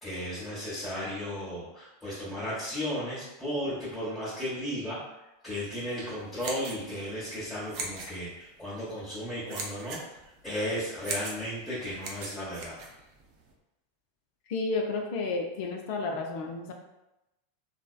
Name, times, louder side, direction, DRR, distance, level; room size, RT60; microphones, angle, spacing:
voice 1, 0.0-5.0 5.4-10.0 10.4-12.7, equal, 5° left, -11 dB, 0.9 m, -34 dB
sound 1, 6.2-13.5, right 3 dB, 45° right, 0.5 m, -41 dB
voice 2, 14.5-16.7, left 3 dB, 55° left, 3 dB, 0.4 m, -31 dB
3.3 x 2.1 x 2.3 m, 0.93 s
figure-of-eight pair, 85°, 0 cm